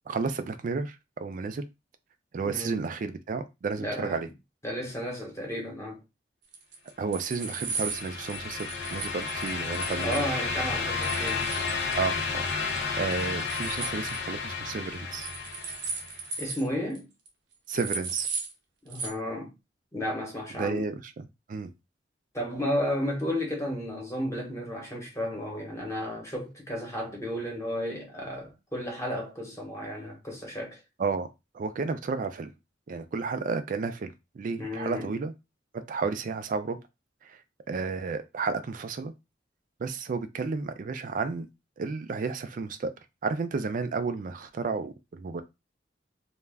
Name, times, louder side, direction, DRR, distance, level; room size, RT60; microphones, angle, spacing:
voice 1, 0.1-1.7 2.3-4.3 7.0-10.2 12.0-15.3 17.7-18.3 20.6-21.7 31.0-31.3 31.5-32.5 32.9-35.3 35.7-36.8 37.2-37.4 37.7-39.1 39.8-41.5 41.8-42.9 43.2-45.4, right 4 dB, 50° right, 0.3 m, -32 dB
voice 2, 2.4-2.9 3.8-4.2 4.6-6.0 10.0-11.5 16.4-17.1 18.8-19.5 19.9-20.9 22.3-30.8 34.6-35.1, left 1 dB, 15° left, 0.9 m, -33 dB
sound 1, 6.5-10.2 11.0-12.2 12.5-12.8 13.1-14.2 15.1-16.7 16.9-17.0 17.2-17.3 17.7-18.5 18.9-19.1, right 5 dB, 85° right, 0.7 m, -36 dB
sound 2, 7.3-16.2, left 4 dB, 70° left, 0.6 m, -32 dB
2.3 x 2.1 x 3.4 m
head